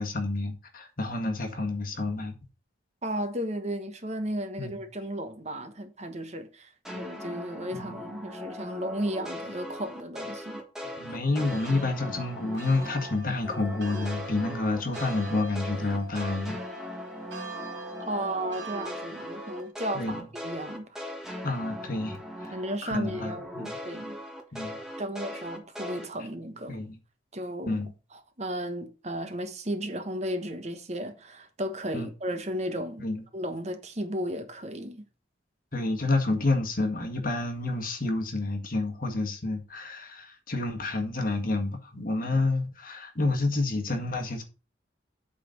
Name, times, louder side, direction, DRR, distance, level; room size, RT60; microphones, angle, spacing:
voice 1, 0.0-2.3 4.6-4.8 7.7-8.1 11.0-16.6 19.9-20.2 21.4-23.7 24.5-24.8 26.7-27.0 27.6-27.9 31.9-32.1 33.0-33.2 35.7-44.4, left 2 dB, 50° left, 1.8 m, -29 dB
voice 2, 3.0-10.6 18.0-21.0 22.5-24.2 24.8-26.8 27.3-27.8 28.1-33.0 33.3-35.0, right 1 dB, 35° right, 1.2 m, -34 dB
sound 1, 6.8-13.2 13.4-22.8 23.0-26.1, left 1 dB, 5° right, 1.6 m, -39 dB
sound 2, 10.8-19.7, right 2 dB, 75° right, 2.1 m, -43 dB
8.4 x 4.2 x 6.5 m
head